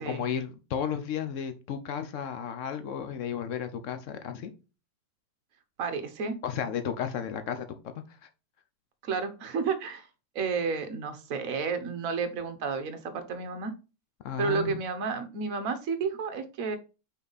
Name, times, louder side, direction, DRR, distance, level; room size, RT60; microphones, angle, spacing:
voice 1, 0.0-4.5 6.4-7.6 14.2-14.8, left 8 dB, 75° left, 8 dB, 0.7 m, -33 dB
voice 2, 5.8-6.3 9.0-10.1 10.3-13.7 14.4-16.8, right 5 dB, 50° right, 8 dB, 1.2 m, -31 dB
5.6 x 4.3 x 4.0 m, 0.31 s
omnidirectional pair, 2.2 m